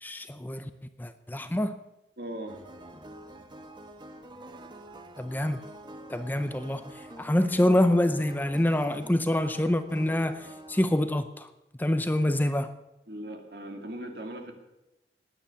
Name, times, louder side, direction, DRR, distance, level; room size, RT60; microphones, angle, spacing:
voice 1, 0.0-0.7 1.0-1.8 5.2-5.6 6.1-6.9 7.2-11.5 11.8-12.8, left 1 dB, 10° left, 10 dB, 0.5 m, -26 dB
voice 2, 2.2-2.6 12.2-12.3 13.1-14.5, right 1 dB, 60° right, 4 dB, 2.4 m, -39 dB
sound 1, 2.5-10.9, right 1 dB, 25° right, 1.1 m, -47 dB
19.0 x 9.3 x 7.0 m, 0.95 s
head